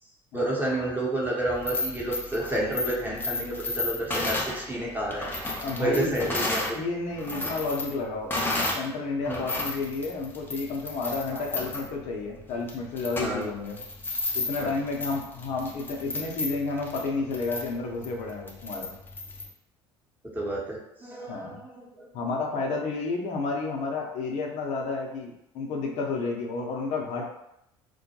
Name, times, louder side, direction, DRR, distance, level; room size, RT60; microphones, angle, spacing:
voice 1, 0.3-5.3 5.8-6.8 9.3-9.4 11.3-11.4 13.2-13.5 14.6-14.8 20.3-22.1, right 1 dB, 15° right, -4 dB, 0.9 m, -30 dB
sound 1, 1.5-6.8 7.1-8.9 9.2-19.5, left 2 dB, 15° left, 0.6 m, -33 dB
voice 2, 5.6-6.3 6.7-8.3 8.7-13.8 14.3-18.9 21.3-21.6 22.1-27.2, left 3 dB, 60° left, 0 dB, 0.7 m, -31 dB
2.3 x 2.1 x 2.8 m, 0.81 s
hypercardioid pair, 65°, 14 cm